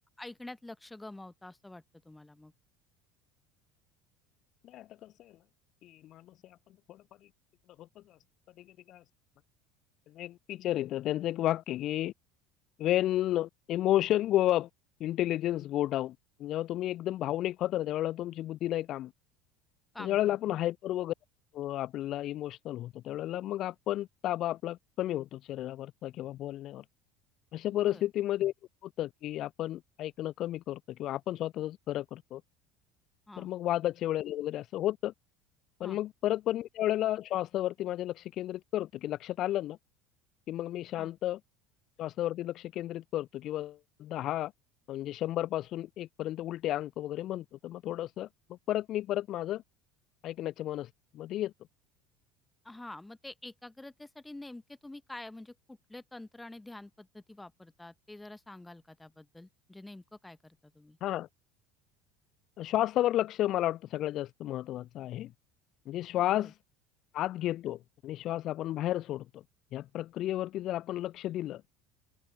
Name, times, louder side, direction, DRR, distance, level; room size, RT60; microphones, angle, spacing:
voice 1, 0.2-2.5 19.9-20.2 20.5-20.6 27.7-28.0 33.3-33.5 35.8-36.0 41.0-41.1 52.6-61.0 66.3-66.5, left 2 dB, 10° left, 1.3 m, -47 dB
voice 2, 4.6-5.4 5.8-6.6 6.9-7.0 7.8-8.0 8.6-9.0 10.1-12.1 12.8-14.7 15.0-19.1 20.0-21.1 21.5-26.8 27.5-28.5 28.8-32.4 33.4-35.1 35.8-39.8 40.5-41.4 42.0-44.5 44.9-49.6 50.2-51.5 61.0-61.3 62.6-65.3 65.9-66.5 67.1-69.4 69.7-71.6, left 13 dB, 45° left, 0.4 m, -32 dB
open air
figure-of-eight pair, 65°, 0 cm